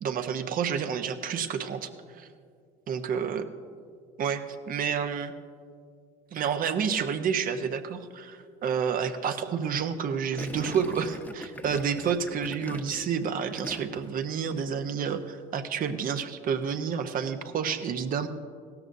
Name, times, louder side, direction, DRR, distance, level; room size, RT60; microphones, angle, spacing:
voice 1, 0.0-2.3 2.9-3.5 4.2-5.3 6.3-18.3, right 7 dB, 50° right, 9 dB, 0.9 m, -29 dB
Gurgling, 10.4-14.2 14.4-14.8, left 1 dB, 10° left, 0.9 m, -41 dB
16.5 x 13.0 x 2.7 m, 2.1 s
supercardioid pair, 75°, 18 cm